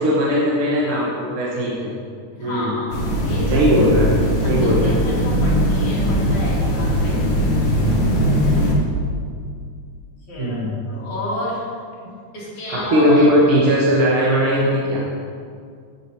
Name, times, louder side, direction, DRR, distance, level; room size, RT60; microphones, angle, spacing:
voice 1, 0.0-1.9 2.4-2.7 3.5-4.1 4.4-4.9 10.4-10.8 12.7-15.0, equal, 55° right, -6 dB, 2.1 m, -18 dB
voice 2, 2.3-3.6 4.4-7.2 10.3-11.7 12.3-13.3, left 1 dB, 80° left, -8 dB, 4.7 m, -31 dB
sound 1, 2.9-8.7, equal, 55° left, 2.7 m, -19 dB
16.5 x 9.0 x 3.0 m, 2.2 s
omnidirectional pair, 3.3 m